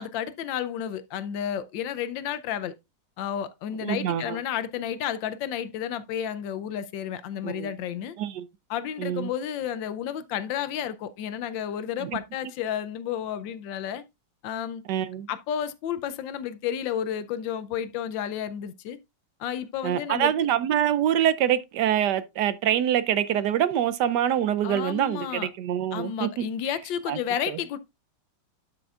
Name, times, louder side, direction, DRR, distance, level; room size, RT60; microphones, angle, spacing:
voice 1, 0.0-2.7 3.2-8.1 8.7-14.0 14.4-14.8 15.3-19.0 19.4-20.3 24.6-25.5 25.9-27.8, left 9 dB, 80° left, 1.4 m, -31 dB
voice 2, 3.8-4.4 7.4-7.7 8.2-8.5 9.0-9.3 12.0-12.2 14.9-15.3 19.8-26.5 27.1-27.2 27.5-27.6, right 10 dB, 70° right, 1.1 m, -25 dB
11.5 x 5.9 x 2.4 m
omnidirectional pair, 2.1 m